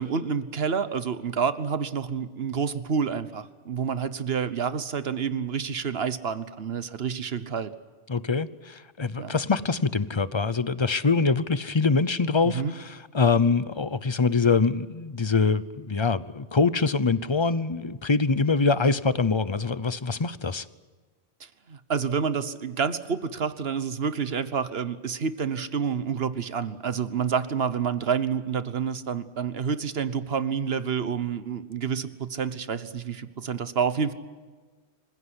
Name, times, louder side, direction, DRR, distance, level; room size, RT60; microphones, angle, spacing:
voice 1, 0.0-7.7 9.2-9.3 12.4-12.7 21.4-34.1, right 6 dB, 65° right, 13 dB, 1.4 m, -28 dB
voice 2, 8.1-20.6, left 4 dB, 30° left, 16 dB, 0.7 m, -24 dB
25.5 x 16.5 x 10.0 m, 1.4 s
omnidirectional pair, 1.1 m